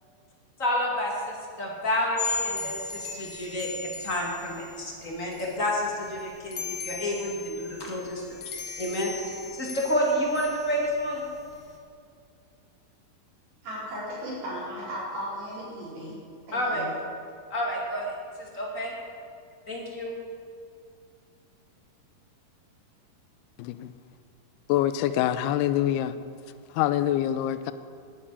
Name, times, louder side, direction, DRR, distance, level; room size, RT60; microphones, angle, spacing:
voice 1, 0.6-8.2 8.8-9.1 9.6-11.2 16.5-16.8 17.5-18.1 18.5-18.9 19.7-20.2, equal, 30° left, -2 dB, 1.5 m, -29 dB
sound 1, 2.2-11.8, left 4 dB, 55° left, 1.7 m, -38 dB
voice 2, 13.6-16.2 16.5-16.9, equal, 75° right, -9 dB, 6.3 m, -36 dB
voice 3, 23.6-23.9 24.7-26.2 26.8-27.7, left 12 dB, 90° left, 12 dB, 2.6 m, -25 dB
11.5 x 8.7 x 8.8 m, 2.3 s
omnidirectional pair, 4.5 m